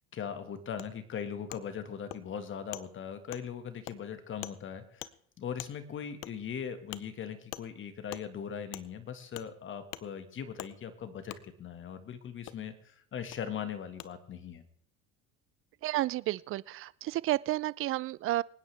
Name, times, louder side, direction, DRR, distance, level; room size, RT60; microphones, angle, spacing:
voice 1, 0.1-5.1 5.4-14.6, left 7 dB, 40° left, 9 dB, 1.9 m, -40 dB
Wood, 0.8-0.9 1.5-1.6 2.1-2.2 2.7-2.8 3.3-3.4 3.8-4.0 4.4-4.6 5.0-5.1 5.6-5.7 6.2-6.3 6.9-7.0 7.5-7.6 8.1-8.2 8.7-8.8 9.3-9.5 9.9-10.0 10.6-10.7 11.3-11.4 12.5-12.6 13.3-13.4 14.0-14.1, left 17 dB, 85° left, 0.7 m, -42 dB
voice 2, 15.8-18.4, right 16 dB, 45° right, 21 dB, 0.5 m, -31 dB
24.5 x 9.6 x 3.5 m, 0.66 s
supercardioid pair, 105°, 30 cm